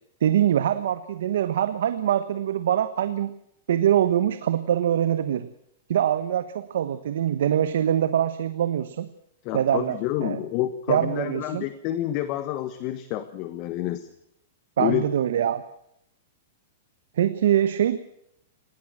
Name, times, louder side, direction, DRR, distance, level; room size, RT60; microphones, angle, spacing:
voice 1, 0.2-3.3 3.7-5.5 5.9-9.1 9.5-10.4 10.9-11.6 14.8-15.6 17.2-18.0, right 10 dB, 75° right, 11 dB, 1.3 m, -23 dB
voice 2, 9.4-14.1 14.8-15.0, left 13 dB, 35° left, 12 dB, 1.4 m, -28 dB
20.0 x 18.0 x 7.7 m, 0.75 s
supercardioid pair, 165°, 0 cm